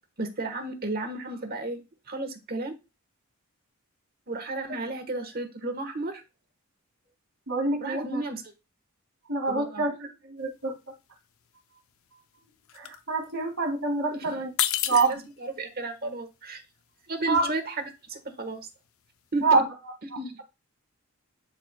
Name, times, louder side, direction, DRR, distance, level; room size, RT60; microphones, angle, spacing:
voice 1, 0.2-2.8 4.3-6.2 7.8-8.5 9.5-9.8 14.1-14.2 14.9-16.6 17.1-18.6 19.3-19.4 20.1-20.4, right 2 dB, 45° right, 6 dB, 1.3 m, -33 dB
voice 2, 7.5-8.2 9.3-10.8 12.7-14.5 14.9-15.2 17.3-17.5 19.4-19.7, right 3 dB, 75° right, 2 dB, 2.5 m, -26 dB
sound 1, 10.4-10.6 10.9-11.6 11.9-14.1 14.4-19.4, left 12 dB, 70° left, 0.5 m, -33 dB
11.5 x 4.3 x 2.2 m, 0.26 s
head